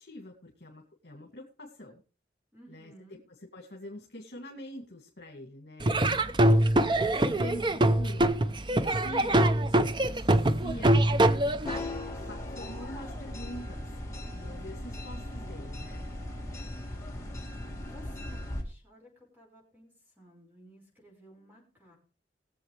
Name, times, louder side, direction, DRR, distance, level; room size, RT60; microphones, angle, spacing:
voice 1, 0.0-2.0 2.7-6.0 6.7-13.9 14.3-16.1, left 1 dB, 65° left, 0 dB, 2.4 m, -45 dB
voice 2, 2.5-3.2 17.9-22.0, equal, 10° right, -1 dB, 5.3 m, -56 dB
Laughter / Drum, 5.8-11.8, right 1 dB, 25° right, 0.5 m, -24 dB
sound 1, 11.6-18.6, left 1 dB, 15° left, 2.1 m, -38 dB
21.0 x 7.5 x 3.3 m, 0.35 s
head